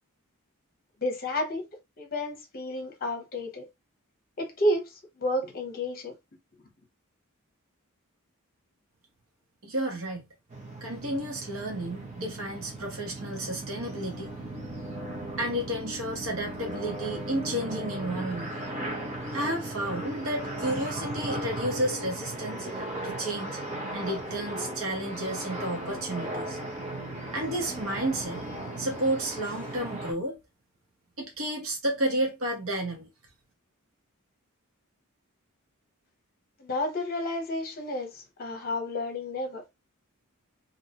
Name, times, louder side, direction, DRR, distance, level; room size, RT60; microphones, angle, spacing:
voice 1, 1.0-1.7 2.0-3.7 4.4-6.1 36.6-39.8, left 1 dB, 40° left, 0.8 m, -31 dB
voice 2, 9.6-10.3 10.8-14.3 15.4-18.5 19.3-23.6 23.9-26.6 27.3-28.4 28.8-30.4 31.2-33.1, right 1 dB, 70° right, 0.9 m, -31 dB
sound 1, 10.5-30.1, right 1 dB, 30° right, 0.8 m, -37 dB
2.6 x 2.0 x 2.8 m
head